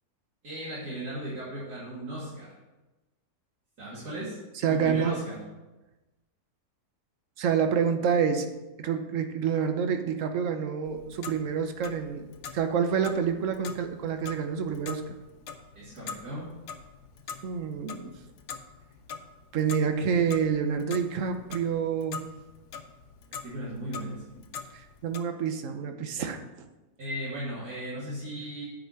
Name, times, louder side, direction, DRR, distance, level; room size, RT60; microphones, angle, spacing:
voice 1, 0.4-2.5 3.8-4.4 4.7-5.4 15.7-16.5 23.3-24.4 27.0-28.6, right 1 dB, 75° right, -11 dB, 3.2 m, -36 dB
voice 2, 4.6-5.2 7.4-8.5 8.8-15.1 17.4-18.1 19.5-22.3 24.7-26.7, right 7 dB, 60° right, 7 dB, 1.1 m, -28 dB
Clock, 10.8-25.2, left 6 dB, 90° left, 1.4 m, -44 dB
8.7 x 5.2 x 6.5 m, 1.1 s
omnidirectional pair, 1.7 m